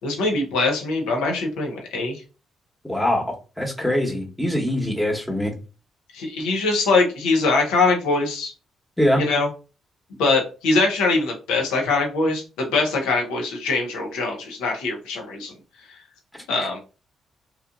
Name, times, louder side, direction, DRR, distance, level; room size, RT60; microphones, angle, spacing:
voice 1, 0.0-2.2 6.1-8.5 9.2-9.5 10.2-15.5 16.5-16.8, left 3 dB, 80° left, 0.8 m, -22 dB
voice 2, 2.8-5.5 9.0-9.2, left 1 dB, 10° left, 1.1 m, -23 dB
2.9 x 2.4 x 2.4 m
hypercardioid pair, 40°, 0 cm